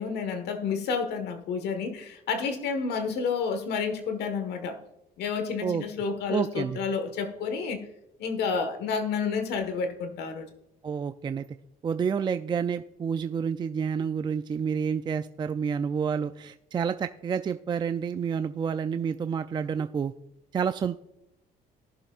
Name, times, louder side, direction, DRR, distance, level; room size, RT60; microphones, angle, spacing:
voice 1, 0.0-4.8 5.2-7.9 8.2-10.5, left 5 dB, 75° left, 8 dB, 1.5 m, -30 dB
voice 2, 6.3-6.8 10.8-11.4 11.8-20.1 20.5-21.0, right 6 dB, 25° right, 10 dB, 0.4 m, -29 dB
18.5 x 6.9 x 2.4 m, 0.87 s
cardioid pair, 110°, 17 cm